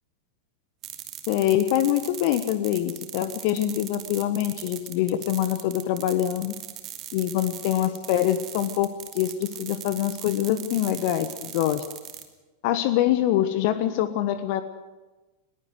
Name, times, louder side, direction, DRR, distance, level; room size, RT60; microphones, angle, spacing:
sound 1, 0.8-12.2, right 12 dB, 35° right, 2.7 m, -39 dB
voice 1, 1.3-6.5 7.1-11.8 12.6-14.6, left 12 dB, 50° left, 11 dB, 1.3 m, -24 dB
21.5 x 17.5 x 8.0 m, 1.1 s
figure-of-eight pair, 90°, 0 cm